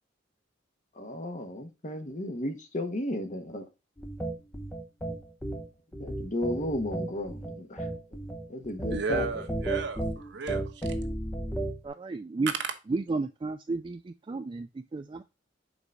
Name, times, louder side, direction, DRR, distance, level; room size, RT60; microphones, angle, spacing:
voice 1, 0.9-3.6 6.0-7.9 8.5-9.2, left 1 dB, 40° left, 1.2 m, -34 dB
sound 1, 4.0-11.9, right 1 dB, 10° left, 0.9 m, -34 dB
voice 2, 8.9-11.0 12.5-12.7, right 4 dB, 65° right, 1.1 m, -34 dB
voice 3, 11.8-12.5 12.9-15.2, right 3 dB, 25° right, 0.3 m, -32 dB
5.2 x 3.9 x 4.6 m
head